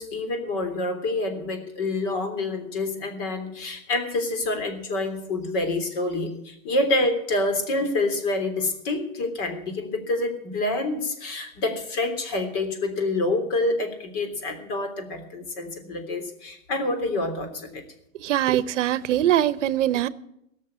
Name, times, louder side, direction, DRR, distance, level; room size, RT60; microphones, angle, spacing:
voice 1, 0.0-17.8, left 2 dB, 40° left, 5 dB, 3.3 m, -27 dB
voice 2, 18.2-20.1, right 12 dB, 60° right, 17 dB, 0.9 m, -22 dB
17.5 x 6.6 x 9.6 m, 0.77 s
hypercardioid pair, 145°, 40 cm